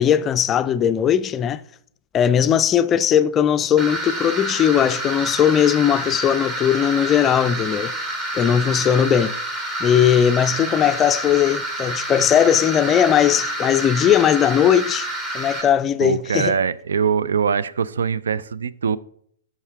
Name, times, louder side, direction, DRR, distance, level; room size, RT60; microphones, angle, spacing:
voice 1, 0.0-1.6 2.1-7.9 8.3-9.3 9.8-15.1 15.3-16.5, left 9 dB, 25° left, 0.3 m, -18 dB
sound 1, 3.8-15.6, right 1 dB, 25° right, 1.9 m, -28 dB
voice 2, 16.0-19.0, right 6 dB, 75° right, 0.4 m, -22 dB
6.5 x 5.6 x 4.7 m
hypercardioid pair, 115°, 0 cm